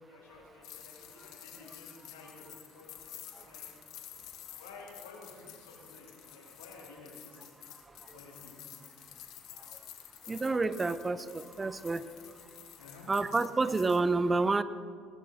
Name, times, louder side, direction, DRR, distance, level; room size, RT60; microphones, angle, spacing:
voice 1, 0.1-2.5 2.7-2.9 3.4-3.7 4.5-7.4 8.1-8.6 12.8-13.1, left 4 dB, 85° left, -3 dB, 3.9 m, -52 dB
sound 1, 0.6-14.0, left 12 dB, 65° left, 1.7 m, -51 dB
voice 2, 10.3-12.0 13.1-14.6, right 3 dB, 25° right, 15 dB, 0.7 m, -29 dB
19.0 x 15.0 x 4.2 m, 2.2 s
hypercardioid pair, 70°, 0 cm